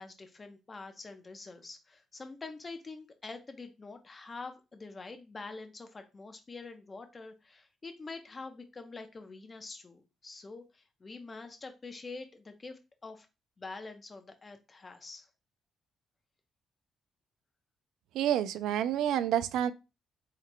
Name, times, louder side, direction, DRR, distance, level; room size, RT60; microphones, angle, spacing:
voice 1, 0.0-13.3 13.6-15.3, left 3 dB, 30° left, 0.8 m, -46 dB
voice 2, 18.1-19.7, right 10 dB, 85° right, 0.3 m, -28 dB
4.5 x 3.7 x 2.2 m
cardioid pair, 90°, 0 cm